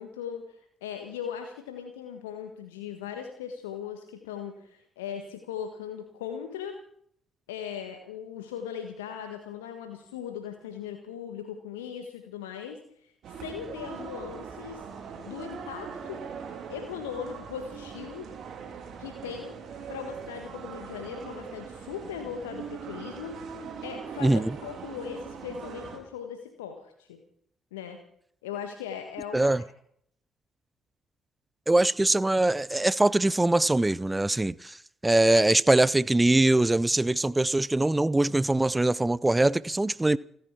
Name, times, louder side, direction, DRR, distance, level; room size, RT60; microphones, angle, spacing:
voice 1, 0.0-6.7 7.5-14.9 15.2-16.2 16.7-18.3 19.0-19.6 19.9-23.5 23.8-27.2 27.7-28.0 28.4-29.6, left 8 dB, 80° left, 1.5 m, -39 dB
sound 1, 13.2-26.0, right 6 dB, 55° right, 3.5 m, -41 dB
voice 2, 24.2-24.5 29.3-29.6 31.7-34.8 35.0-40.2, right 2 dB, 15° right, 0.6 m, -22 dB
30.0 x 10.5 x 4.5 m
figure-of-eight pair, 45°, 0 cm